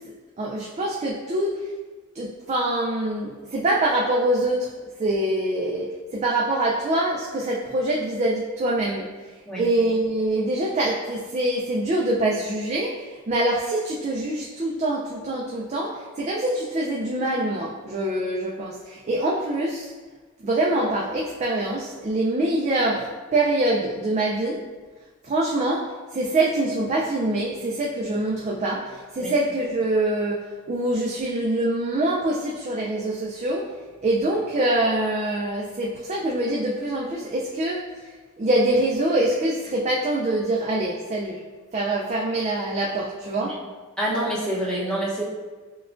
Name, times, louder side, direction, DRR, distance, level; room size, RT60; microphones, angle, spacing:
voice 1, 0.4-1.6 2.1-4.7 5.0-9.1 9.5-19.9 20.4-23.1 23.3-24.6 25.2-25.9 26.1-33.7 34.0-37.8 38.4-41.4 41.7-43.6, right 1 dB, 30° right, -3 dB, 0.3 m, -24 dB
voice 2, 44.0-45.2, right 1 dB, 5° left, -7 dB, 0.8 m, -27 dB
5.8 x 2.2 x 2.4 m, 1.3 s
head